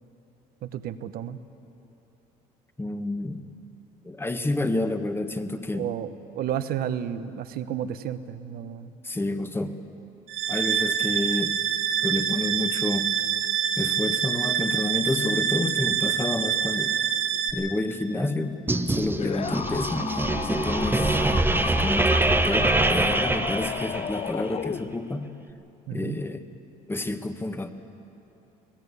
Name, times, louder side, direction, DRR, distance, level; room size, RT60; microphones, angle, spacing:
voice 1, 0.6-1.4 5.7-8.9 25.9-26.2, right 10 dB, 65° right, 11 dB, 1.1 m, -32 dB
voice 2, 2.8-3.5 4.0-5.9 9.0-9.8 10.5-11.6 12.0-13.1 13.8-16.9 17.5-18.6 18.9-25.3 25.9-26.4 26.9-27.7, left 2 dB, 15° left, 8 dB, 1.6 m, -29 dB
sound 1, 10.3-17.5, right 8 dB, 90° right, 2.1 m, -26 dB
sound 2, 18.7-24.3, right 2 dB, 10° right, 1.2 m, -24 dB
sound 3, 19.2-25.2, left 7 dB, 40° left, 0.7 m, -33 dB
24.0 x 18.0 x 8.4 m, 2.9 s
supercardioid pair, 80°, 17 cm